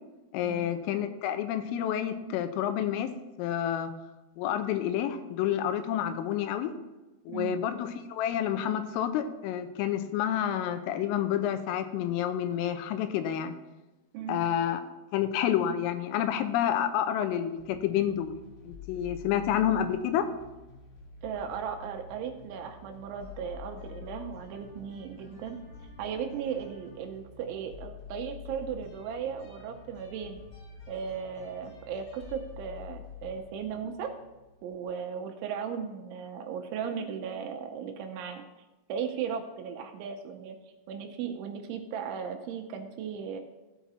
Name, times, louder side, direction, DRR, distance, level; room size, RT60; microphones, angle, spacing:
voice 1, 0.3-3.1 3.4-3.9 4.4-6.7 7.3-13.5 14.3-14.8 15.1-18.3 18.6-20.3, left 10 dB, 85° left, 9 dB, 3.4 m, -29 dB
voice 2, 7.3-7.6 14.1-14.4 21.2-25.6 26.0-30.4 30.9-34.1 34.6-38.4 38.9-40.6 40.9-43.4, right 7 dB, 75° right, 5 dB, 3.1 m, -36 dB
sound 1, 17.6-34.9, left 6 dB, 55° left, 2.0 m, -48 dB
16.0 x 5.8 x 4.3 m, 1.1 s
omnidirectional pair, 5.8 m